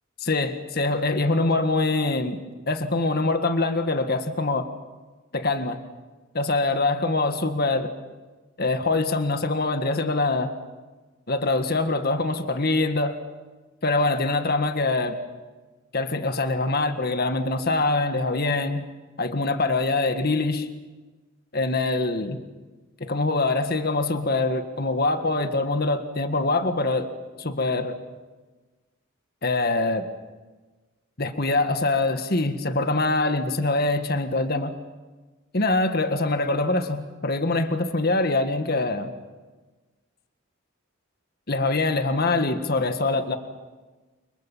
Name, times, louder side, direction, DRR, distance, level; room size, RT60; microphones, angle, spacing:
voice 1, 0.2-2.4 2.7-4.7 5.3-5.8 6.3-7.9 8.6-10.5 11.3-13.2 13.8-15.2 15.9-18.9 19.2-20.7 21.5-22.4 23.0-27.1 27.4-28.0 29.4-30.1 31.2-34.8 35.5-39.1 41.5-43.4, left 2 dB, 50° left, 7 dB, 1.7 m, -24 dB
30.0 x 24.5 x 7.4 m, 1.2 s
head